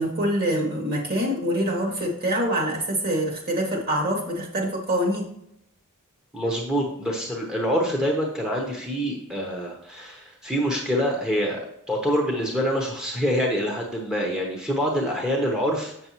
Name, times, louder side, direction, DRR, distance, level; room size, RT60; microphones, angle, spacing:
voice 1, 0.0-5.2, equal, 45° right, -1 dB, 2.5 m, -25 dB
voice 2, 6.3-11.6 11.9-16.1, equal, 5° right, -2 dB, 0.9 m, -26 dB
7.6 x 6.9 x 3.0 m, 0.76 s
head